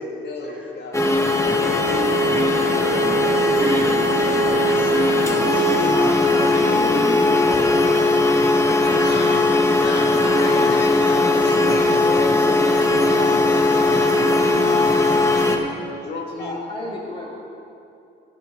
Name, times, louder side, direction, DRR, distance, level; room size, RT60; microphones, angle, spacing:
voice 1, 0.0-2.8 5.1-6.0 8.9-14.2 15.8-16.6, left 3 dB, 60° left, 0 dB, 2.2 m, -33 dB
sound 1, 0.9-15.6, left 2 dB, 15° left, 1.4 m, -18 dB
voice 2, 2.6-7.9 8.2-9.3 9.7-10.2, right 1 dB, 5° right, -7 dB, 3.0 m, -31 dB
voice 3, 16.3-17.3, left 2 dB, 35° left, -11 dB, 3.1 m, -32 dB
17.0 x 9.0 x 3.9 m, 2.7 s
cardioid pair, 90°, 20 cm